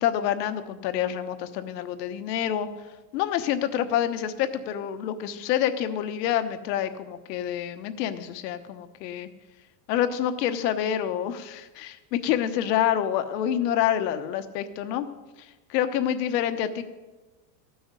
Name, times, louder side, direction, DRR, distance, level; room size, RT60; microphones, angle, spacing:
voice 1, 0.0-2.7 3.1-9.3 9.9-15.1 15.7-16.8, left 10 dB, 80° left, 9 dB, 1.2 m, -27 dB
14.0 x 6.2 x 8.2 m, 1.1 s
supercardioid pair, 175°, 48 cm